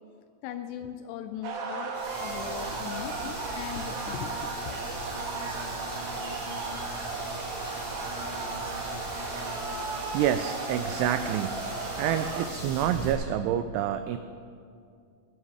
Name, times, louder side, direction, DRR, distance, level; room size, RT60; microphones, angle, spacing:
voice 1, 0.4-4.8, left 9 dB, 85° left, 8 dB, 2.5 m, -39 dB
sound 1, 1.4-12.5, right 4 dB, 65° right, 2.8 m, -35 dB
sound 2, 1.9-13.1, equal, 10° right, 4.8 m, -39 dB
voice 2, 10.1-11.7 12.0-14.2, right 10 dB, 90° right, 10 dB, 2.3 m, -28 dB
20.5 x 12.0 x 4.8 m, 2.3 s
omnidirectional pair, 5.3 m